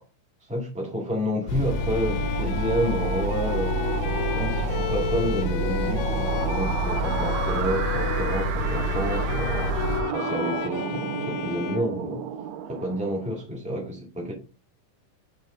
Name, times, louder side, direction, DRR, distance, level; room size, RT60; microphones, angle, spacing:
voice 1, 0.5-3.7 4.3-12.2 12.7-14.3, equal, 10° right, -1 dB, 0.4 m, -30 dB
sound 1, 1.1-13.5, right 9 dB, 80° right, 1.7 m, -33 dB
sound 2, 1.5-10.0, left 1 dB, 70° left, 2.5 m, -28 dB
Bowed string instrument, 1.7-12.7, left 10 dB, 90° left, 2.3 m, -34 dB
6.5 x 3.3 x 4.8 m, 0.35 s
omnidirectional pair, 3.8 m